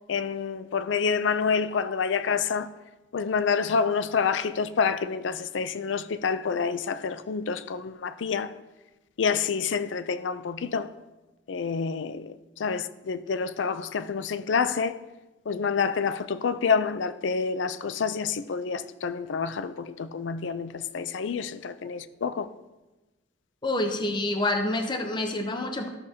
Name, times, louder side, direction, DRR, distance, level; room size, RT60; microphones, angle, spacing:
voice 1, 0.1-2.7 3.1-8.5 9.2-10.9 11.5-15.0 15.5-22.5, left 5 dB, 70° left, 0.5 m, -28 dB
voice 2, 23.6-25.9, left 2 dB, 25° left, 0.7 m, -27 dB
13.5 x 6.4 x 2.8 m
head